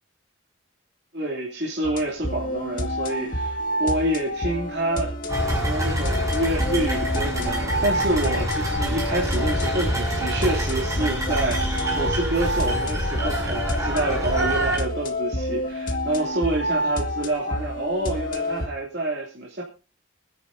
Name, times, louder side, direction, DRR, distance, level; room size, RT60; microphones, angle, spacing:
voice 1, 1.1-19.6, right 1 dB, 55° right, -3 dB, 2.7 m, -27 dB
sound 1, 1.8-18.7, equal, 45° left, 1.8 m, -29 dB
sound 2, 5.3-14.8, equal, 15° right, 6.3 m, -26 dB
25.5 x 10.0 x 2.7 m, 0.33 s
head